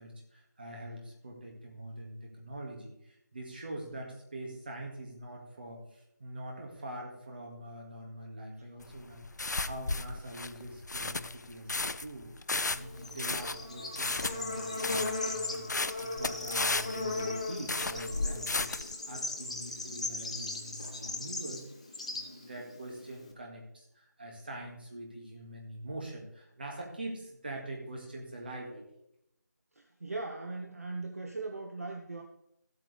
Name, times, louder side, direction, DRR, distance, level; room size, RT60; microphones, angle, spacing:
voice 1, 0.0-12.3 12.7-15.6 16.0-21.6 22.1-28.8, right 1 dB, 30° right, 0 dB, 1.9 m, -44 dB
sound 1, 8.8-18.9, left 3 dB, 65° left, 0.5 m, -34 dB
Bird / Insect, 12.7-23.3, left 2 dB, 20° left, 0.7 m, -38 dB
voice 2, 29.7-32.2, right 3 dB, 50° right, 3 dB, 1.0 m, -39 dB
14.5 x 8.3 x 3.4 m, 0.80 s
figure-of-eight pair, 175°, 10 cm